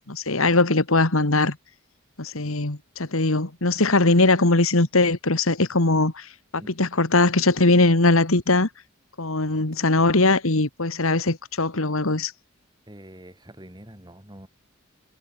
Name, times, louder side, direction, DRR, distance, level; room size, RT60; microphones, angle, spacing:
voice 1, 0.0-1.6 2.2-8.7 9.2-12.3, left 2 dB, 75° left, 2.2 m, -21 dB
voice 2, 12.9-14.5, right 1 dB, 20° right, 3.1 m, -45 dB
head